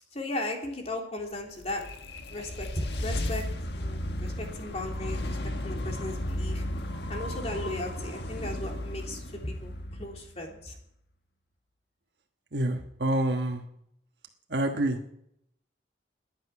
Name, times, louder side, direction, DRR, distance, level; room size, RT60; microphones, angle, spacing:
voice 1, 0.1-1.9 2.3-3.4 3.8-5.4 5.6-6.6 7.1-10.7, left 1 dB, 35° left, 1 dB, 3.3 m, -36 dB
sound 1, 1.4-10.7, left 1 dB, 70° left, 1.5 m, -34 dB
voice 2, 12.5-13.6 14.5-15.0, right 1 dB, 75° right, 3 dB, 1.3 m, -27 dB
18.5 x 10.5 x 6.0 m, 0.74 s
head